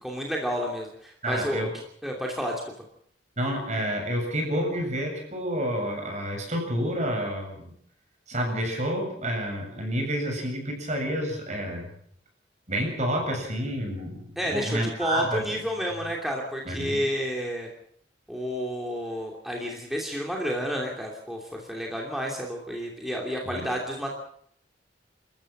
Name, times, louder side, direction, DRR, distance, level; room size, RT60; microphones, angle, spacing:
voice 1, 0.0-1.7 2.0-2.5 14.4-17.7 18.3-21.4 21.7-24.1, equal, ahead, -1 dB, 2.9 m, -30 dB
voice 2, 1.2-1.7 3.4-7.7 8.3-11.9 12.7-15.4 16.6-17.0 23.4-23.6, equal, 40° right, 2 dB, 7.8 m, -29 dB
27.5 x 14.5 x 7.4 m, 0.67 s
head